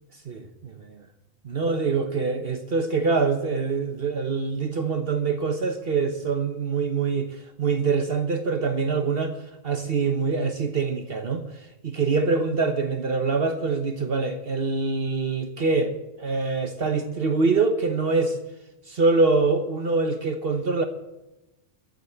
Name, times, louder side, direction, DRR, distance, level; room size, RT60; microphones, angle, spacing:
voice 1, 0.3-0.7 1.4-7.3 7.6-9.4 9.6-11.4 11.8-18.4 18.9-20.8, right 4 dB, 50° right, 7 dB, 1.2 m, -24 dB
14.5 x 8.0 x 9.9 m, 0.96 s
omnidirectional pair, 1.3 m